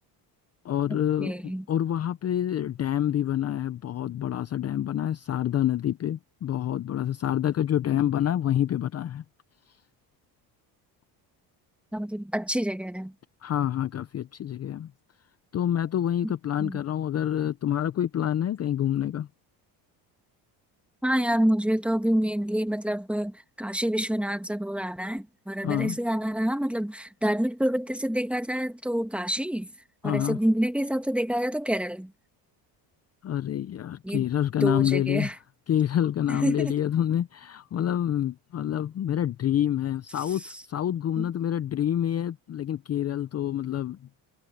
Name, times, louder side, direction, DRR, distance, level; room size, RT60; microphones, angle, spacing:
voice 1, 0.6-1.4 1.7-9.2 13.4-14.9 15.5-19.3 25.6-26.0 30.0-30.4 33.2-35.4 35.7-44.0, left 10 dB, 35° left, 0.6 m, -27 dB
voice 2, 1.2-1.6 11.9-13.1 16.2-16.3 16.6-16.8 21.0-29.7 30.0-32.1 34.0-34.2 34.6-35.3 36.3-36.7 41.2-41.3, equal, 5° right, 1.7 m, -27 dB
cardioid pair, 125°, 45 cm